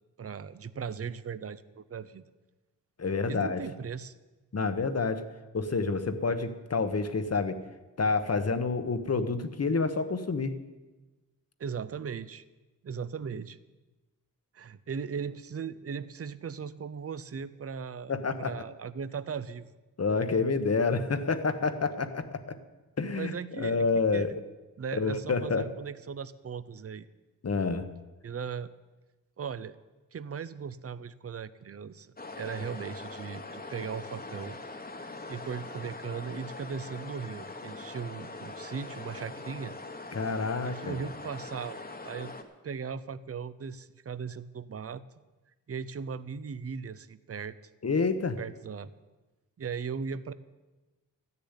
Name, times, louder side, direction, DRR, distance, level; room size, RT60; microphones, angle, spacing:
voice 1, 0.2-2.3 3.2-4.1 11.6-12.4 12.8-13.6 14.5-19.7 23.1-24.3 24.8-27.1 28.2-28.7 29.4-29.8 30.1-34.6 35.3-39.7 40.7-41.8 42.0-42.3 42.6-45.0 45.7-47.6 48.4-48.9 49.6-50.3, right 6 dB, 45° right, 16 dB, 0.6 m, -38 dB
voice 2, 3.0-3.6 4.5-5.2 5.5-7.6 8.0-10.5 18.1-18.5 20.0-22.6 23.0-24.3 24.9-25.6 27.4-27.9 40.1-41.0 47.8-48.4, left 4 dB, 45° left, 9 dB, 1.0 m, -28 dB
sound 1, 32.2-42.4, left 3 dB, 25° left, 1.2 m, -42 dB
14.0 x 6.9 x 9.8 m, 1.2 s
wide cardioid pair, 125°, 34 cm